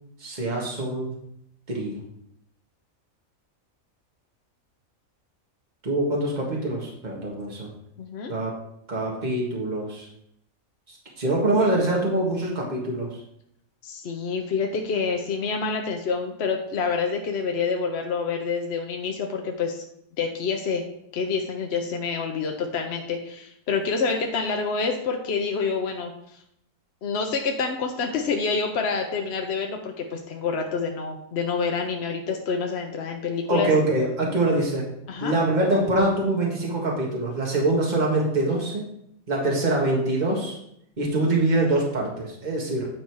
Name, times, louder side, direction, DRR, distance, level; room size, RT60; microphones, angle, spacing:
voice 1, 0.2-1.2 1.7-2.0 5.8-7.7 8.3-8.6 8.9-10.1 11.2-13.1 33.5-34.9 35.2-38.8 39.3-40.6 41.0-42.9, right 2 dB, 35° right, -2 dB, 1.8 m, -24 dB
voice 2, 8.0-8.3 13.8-19.8 20.2-20.8 21.1-26.1 27.0-33.7 35.1-35.3, left 5 dB, 55° left, 3 dB, 1.0 m, -27 dB
9.4 x 4.2 x 4.6 m, 0.74 s
omnidirectional pair, 1.4 m